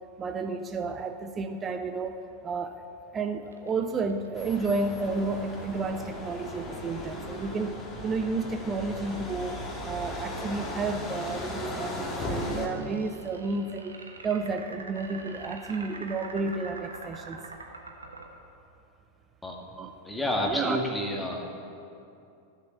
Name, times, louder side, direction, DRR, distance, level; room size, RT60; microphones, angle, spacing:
voice 1, 0.2-2.2 2.4-2.9 3.1-17.4 19.8-19.9 20.4-20.8, right 3 dB, 20° right, 7 dB, 0.6 m, -31 dB
sound 1, 3.5-10.7 12.3-18.3, right 3 dB, 75° right, 1.5 m, -45 dB
sound 2, 4.3-12.7, left 1 dB, 20° left, 1.9 m, -36 dB
voice 2, 20.0-21.6, left 1 dB, 5° left, 0 dB, 1.9 m, -29 dB
16.0 x 7.4 x 6.9 m, 2.6 s
figure-of-eight pair, 90°, 0 cm